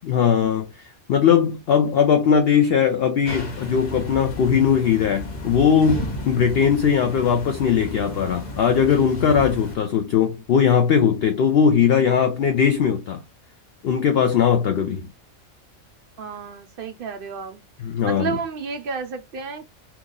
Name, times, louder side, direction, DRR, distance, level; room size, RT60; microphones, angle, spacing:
voice 1, 0.0-13.2 13.8-15.1 17.8-18.4, left 7 dB, 60° left, 0.7 m, -19 dB
sound 1, 3.2-9.8, left 1 dB, 40° left, 0.9 m, -33 dB
voice 2, 16.2-17.6 18.0-19.6, right 5 dB, 55° right, 0.7 m, -31 dB
2.9 x 2.4 x 3.7 m
omnidirectional pair, 1.3 m